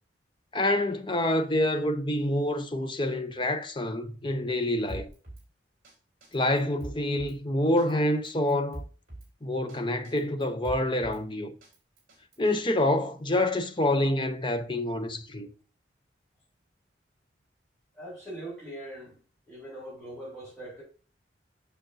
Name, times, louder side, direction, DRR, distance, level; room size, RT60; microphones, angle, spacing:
voice 1, 0.5-5.1 6.3-8.8 9.4-11.5 12.4-15.5, left 1 dB, 25° left, 0.8 m, -27 dB
Drum kit, 4.9-5.5 5.8-5.9 6.2-7.4 7.8-7.9 8.2-9.3 9.7-9.8 10.0-11.2 11.6-12.5, right 1 dB, 45° right, 4.1 m, -43 dB
voice 2, 17.9-19.2 19.5-20.8, right 1 dB, ahead, 4.7 m, -41 dB
9.0 x 6.8 x 2.8 m
head